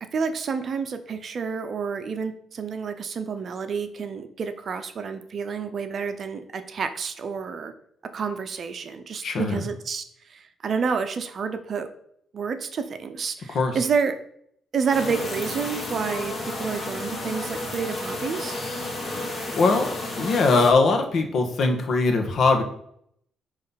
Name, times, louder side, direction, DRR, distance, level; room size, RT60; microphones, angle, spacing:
voice 1, 0.1-7.7 8.1-11.9 12.3-14.1 14.7-18.6, right 5 dB, 40° right, 9 dB, 0.7 m, -29 dB
voice 2, 9.2-9.6 13.5-13.8 19.1-22.6, left 3 dB, 55° left, 4 dB, 1.3 m, -22 dB
sound 1, 14.9-20.7, left 2 dB, 25° left, 1.9 m, -32 dB
9.5 x 3.2 x 5.8 m, 0.68 s
cardioid pair, 130°, 0 cm